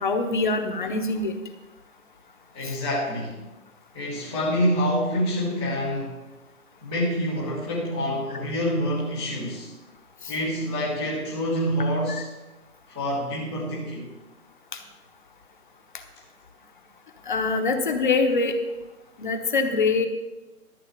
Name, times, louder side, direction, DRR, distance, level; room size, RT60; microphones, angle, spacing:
voice 1, 0.0-1.3 2.6-2.7 10.2-10.3 17.3-18.5 19.2-20.1, left 4 dB, 30° left, 6 dB, 1.0 m, -24 dB
voice 2, 2.5-3.4 3.9-6.2 6.8-9.7 10.3-12.3 12.9-14.1, equal, 5° right, -14 dB, 0.7 m, -27 dB
12.5 x 6.3 x 7.8 m, 1.1 s
figure-of-eight pair, 155°, 47 cm